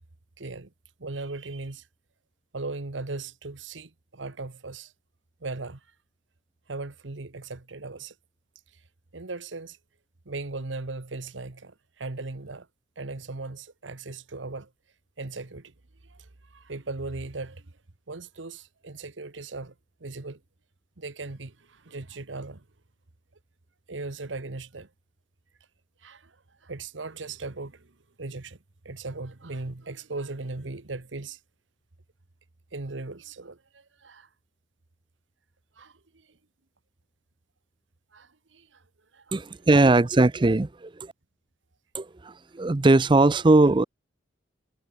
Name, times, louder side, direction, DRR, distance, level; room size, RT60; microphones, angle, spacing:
voice 1, 0.4-0.7 1.0-1.8 2.5-4.9 5.4-5.8 6.7-8.1 9.1-9.8 10.3-12.7 13.0-14.7 15.2-15.7 16.1-16.2 16.5-17.6 18.1-19.7 20.0-20.4 21.0-22.6 23.9-24.9 26.0-26.3 26.6-27.9 28.2-28.6 28.8-31.4 32.7-34.3 35.8-35.9 38.1-38.8 39.1-39.3, right 3 dB, 85° right, 1.3 m, -38 dB
voice 2, 39.3-41.1 41.9-43.8, right 2 dB, 25° right, 0.5 m, -20 dB
head